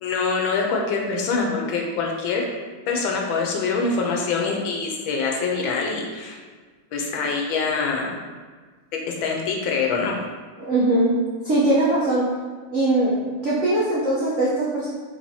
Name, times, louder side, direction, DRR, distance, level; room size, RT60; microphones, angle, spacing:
voice 1, 0.0-2.5 2.9-6.4 6.9-8.2 9.1-10.2, left 4 dB, 80° left, 0 dB, 1.4 m, -24 dB
voice 2, 10.6-11.1 11.4-12.2 12.7-13.1 13.4-14.9, right 2 dB, 75° right, -7 dB, 0.6 m, -20 dB
4.7 x 3.4 x 2.7 m, 1.5 s
omnidirectional pair, 2.2 m